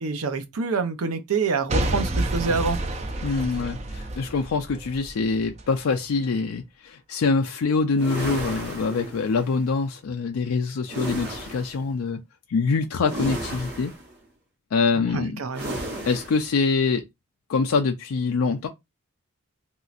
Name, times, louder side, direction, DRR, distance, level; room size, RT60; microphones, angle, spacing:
voice 1, 0.0-2.8 15.1-15.8, right 4 dB, 90° right, 0.6 m, -26 dB
Boom / Shatter / Crushing, 1.7-5.7 6.2-6.3, right 2 dB, 30° right, 0.4 m, -29 dB
voice 2, 3.2-12.2 12.5-13.9 14.7-15.4 16.1-17.0 17.5-18.7, left 4 dB, 80° left, 0.4 m, -24 dB
sound 1, 8.0-9.6 10.9-11.8 13.0-14.1 15.5-16.5, right 1 dB, 50° right, 1.0 m, -34 dB
3.0 x 2.8 x 2.4 m
head